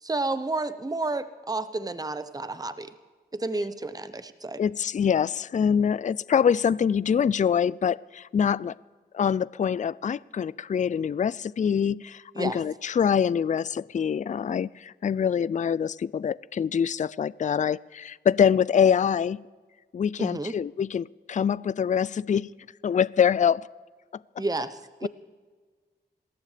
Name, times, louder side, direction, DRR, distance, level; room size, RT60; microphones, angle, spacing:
voice 1, 0.0-2.9 3.3-4.6 12.3-12.6 20.2-20.5 24.4-25.1, right 2 dB, 20° right, 12 dB, 0.8 m, -31 dB
voice 2, 4.6-8.8 9.1-19.4 19.9-22.5 22.8-23.7 25.0-25.1, left 7 dB, 40° left, 21 dB, 0.4 m, -25 dB
27.0 x 14.0 x 3.4 m, 1.5 s
cardioid pair, 45°, 19 cm